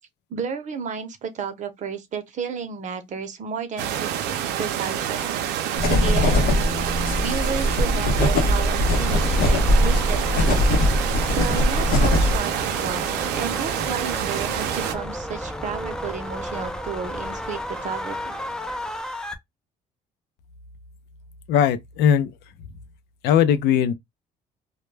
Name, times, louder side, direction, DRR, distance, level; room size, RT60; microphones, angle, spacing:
voice 1, 0.3-5.4 5.9-6.7 7.2-10.7 11.0-18.4, right 6 dB, 45° right, 0.7 m, -32 dB
sound 1, 3.8-14.9, right 10 dB, 85° right, 0.5 m, -27 dB
sound 2, 5.8-12.4, left 1 dB, 65° left, 0.8 m, -21 dB
sound 3, 8.8-19.3, equal, 5° left, 0.4 m, -33 dB
voice 2, 21.5-22.3 23.2-23.9, left 9 dB, 85° left, 0.5 m, -19 dB
2.2 x 2.1 x 3.1 m
cardioid pair, 110°, 17 cm